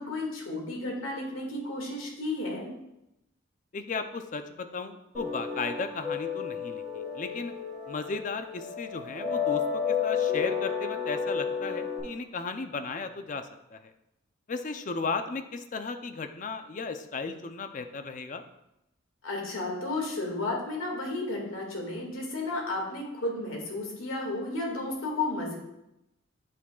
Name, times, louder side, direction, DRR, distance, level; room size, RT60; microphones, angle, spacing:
voice 1, 0.0-2.7 19.2-25.6, left 2 dB, 90° left, -1 dB, 1.9 m, -33 dB
voice 2, 3.7-7.5 7.9-13.9 14.5-18.4, left 4 dB, 40° left, 8 dB, 0.5 m, -35 dB
sound 1, 5.1-12.0, left 7 dB, 5° right, 2.5 m, -32 dB
8.3 x 7.1 x 2.3 m, 0.87 s
head